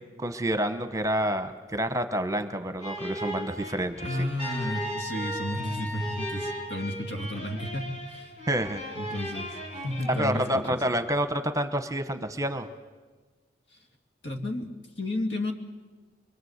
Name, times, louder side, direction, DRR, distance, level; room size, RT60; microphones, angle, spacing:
voice 1, 0.2-4.1 8.5-8.8 10.2-12.7, right 1 dB, 20° right, 9 dB, 1.0 m, -28 dB
sound 1, 2.8-10.9, equal, 40° left, 4.7 m, -38 dB
voice 2, 4.0-8.4 8.9-10.8 13.7-13.8 14.2-15.5, left 1 dB, 70° left, 3 dB, 2.6 m, -32 dB
Trumpet, 4.4-6.7, left 1 dB, 55° left, 7.8 m, -37 dB
24.0 x 23.5 x 8.1 m, 1.3 s
head